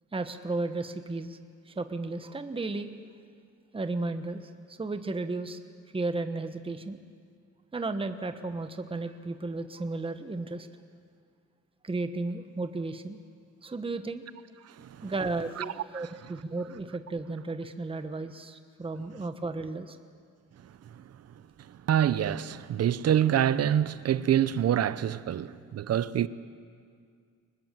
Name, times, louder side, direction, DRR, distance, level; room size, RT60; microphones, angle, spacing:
voice 1, 0.1-1.4 1.7-2.9 3.7-4.4 4.8-5.6 5.9-7.0 7.7-10.7 11.8-13.2 13.6-14.2 15.0-20.0, right 3 dB, 20° right, 1.2 m, -34 dB
voice 2, 14.8-15.1 15.6-15.7 15.9-16.1 21.0-21.1 21.9-26.3, right 10 dB, 55° right, 0.8 m, -26 dB
24.5 x 20.0 x 7.6 m
cardioid pair, 90°, 30 cm